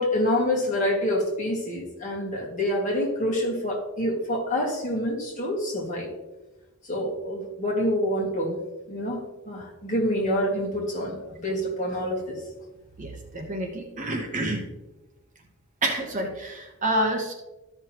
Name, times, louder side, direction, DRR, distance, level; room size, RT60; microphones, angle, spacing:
voice 1, 0.0-6.1 6.8-8.6 8.9-12.4, left 1 dB, 35° left, -2 dB, 2.0 m, -27 dB
voice 2, 13.0-14.7 15.8-17.3, right 1 dB, 35° right, 2 dB, 1.0 m, -28 dB
13.5 x 5.6 x 3.0 m, 1.1 s
head